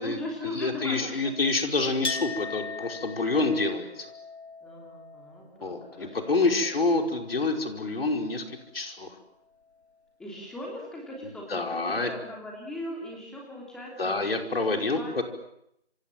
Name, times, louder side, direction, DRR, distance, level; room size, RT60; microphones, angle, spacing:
voice 1, 0.0-1.3 4.6-6.5 10.2-14.2 14.8-15.1, left 1 dB, ahead, -2 dB, 3.1 m, -39 dB
voice 2, 0.5-4.1 5.6-9.1 11.5-12.1 14.0-15.2, left 3 dB, 60° left, 5 dB, 5.3 m, -27 dB
Chink clink, 2.0-7.6 7.9-8.7, left 3 dB, 75° left, 2.7 m, -40 dB
28.0 x 27.5 x 7.6 m, 0.78 s
figure-of-eight pair, 170°, 33 cm